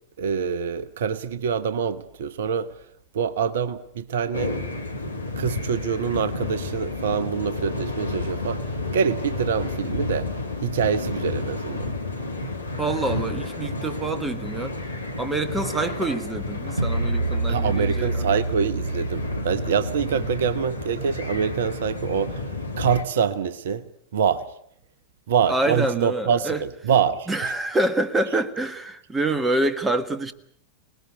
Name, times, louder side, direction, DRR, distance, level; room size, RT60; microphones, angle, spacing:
voice 1, 0.2-2.8 3.1-4.6 5.4-10.3 10.6-11.9 17.5-22.5 22.8-23.9 24.1-24.5 25.3-27.5, right 7 dB, 60° right, 1.0 m, -25 dB
sound 1, 4.3-23.0, left 2 dB, 85° left, 2.2 m, -31 dB
voice 2, 12.8-14.7 15.2-18.2 25.5-26.6 27.3-30.3, right 2 dB, 10° right, 1.6 m, -26 dB
sound 2, 16.8-21.8, right 2 dB, 90° right, 0.9 m, -29 dB
25.5 x 20.0 x 8.0 m
figure-of-eight pair, 90°, 0 cm